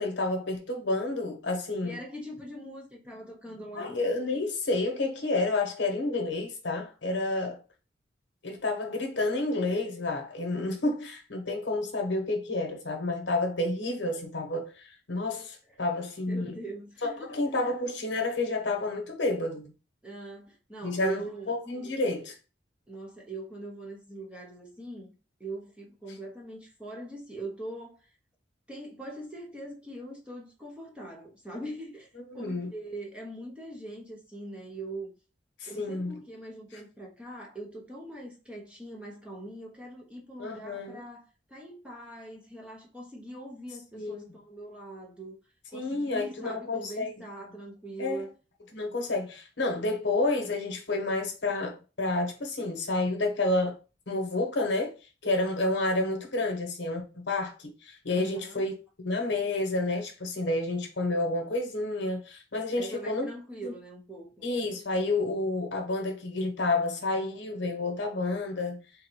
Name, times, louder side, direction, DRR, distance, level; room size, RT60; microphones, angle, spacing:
voice 1, 0.0-2.0 3.8-7.6 8.4-16.5 17.0-19.7 20.8-22.4 32.3-32.7 35.6-36.2 40.4-41.0 43.9-44.3 45.7-47.1 48.0-48.2 48.7-53.8 54.1-54.9 55.2-58.7 59.0-63.3 63.6-63.7 64.4-68.9, left 2 dB, 80° left, 1.0 m, -30 dB
voice 2, 1.8-4.0 16.3-17.4 20.0-21.6 21.8-21.9 22.9-25.1 25.4-28.1 28.7-35.1 35.7-45.4 45.7-48.3 58.1-58.7 62.7-64.5, right 2 dB, 5° right, 0.9 m, -42 dB
3.7 x 2.1 x 4.5 m
head